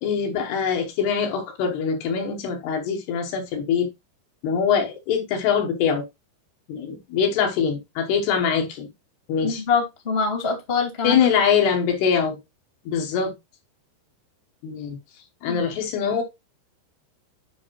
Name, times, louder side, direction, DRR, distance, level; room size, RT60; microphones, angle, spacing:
voice 1, 0.0-3.9 4.4-6.1 6.7-8.9 9.3-9.6 11.0-12.4 12.9-13.3 14.6-15.0 15.4-16.2, left 7 dB, 70° left, 2.9 m, -23 dB
voice 2, 9.4-11.3 15.5-15.7, left 5 dB, 25° left, 1.3 m, -24 dB
10.0 x 5.1 x 3.0 m
omnidirectional pair, 5.3 m